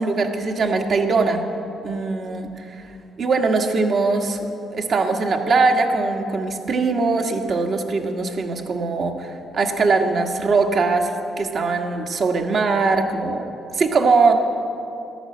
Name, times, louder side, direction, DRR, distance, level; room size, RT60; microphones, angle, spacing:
voice 1, 0.0-1.4 1.8-2.9 3.2-11.1 11.4-14.4, right 4 dB, 55° right, 4 dB, 1.5 m, -21 dB
14.0 x 11.0 x 7.7 m, 2.7 s
cardioid pair, 90°, 0 cm